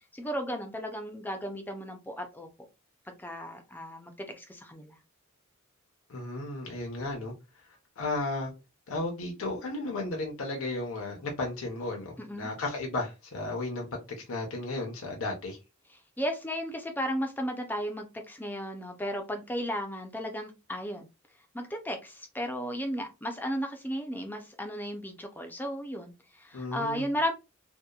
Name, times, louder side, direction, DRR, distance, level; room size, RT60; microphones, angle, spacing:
voice 1, 0.1-2.5 3.2-5.0 12.2-12.5 16.2-21.1 21.5-27.3, equal, 10° left, 0.4 m, -34 dB
voice 2, 6.1-7.3 8.0-8.5 8.9-13.9 14.2-15.6 26.5-27.1, left 2 dB, 65° left, 0.7 m, -34 dB
2.8 x 2.1 x 2.2 m
head